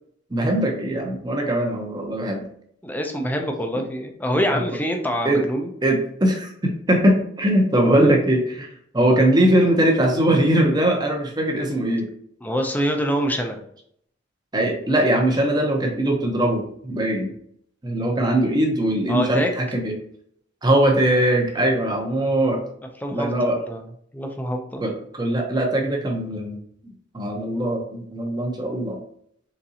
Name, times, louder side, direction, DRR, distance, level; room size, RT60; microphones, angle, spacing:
voice 1, 0.3-2.4 4.5-4.6 5.2-5.4 5.8-8.7 8.9-12.1 14.5-17.3 17.8-19.4 19.7-19.9 20.6-22.6 23.1-23.6 24.8-26.6 27.1-29.0, right 1 dB, 20° right, 1 dB, 0.8 m, -21 dB
voice 2, 2.8-5.7 12.4-13.6 19.1-19.6 23.0-23.3 23.5-23.8 24.1-24.8, equal, 10° left, 4 dB, 0.5 m, -25 dB
4.1 x 3.6 x 2.8 m, 0.67 s
head